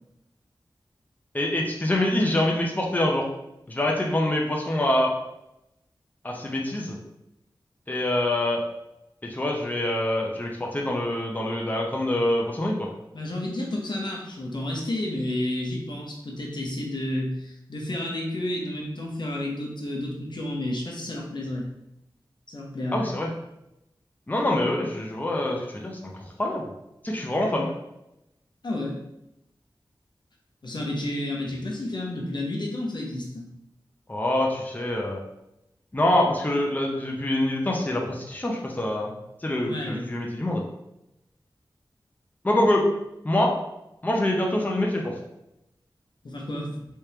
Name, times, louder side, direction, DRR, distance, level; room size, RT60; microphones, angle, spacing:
voice 1, 1.3-3.3 3.7-5.1 6.2-7.0 7.9-8.6 9.2-12.9 22.9-23.3 24.3-26.6 27.0-27.7 34.1-35.2 35.9-39.1 39.4-40.6 42.4-42.9 43.2-43.5 44.0-45.1, left 1 dB, 20° left, -1 dB, 0.7 m, -25 dB
voice 2, 13.1-21.7 22.5-23.1 28.6-29.0 30.6-33.5 39.6-40.1 46.2-46.8, left 1 dB, 65° left, -1 dB, 0.8 m, -31 dB
3.3 x 3.2 x 2.9 m, 0.87 s
wide cardioid pair, 60°, 8 cm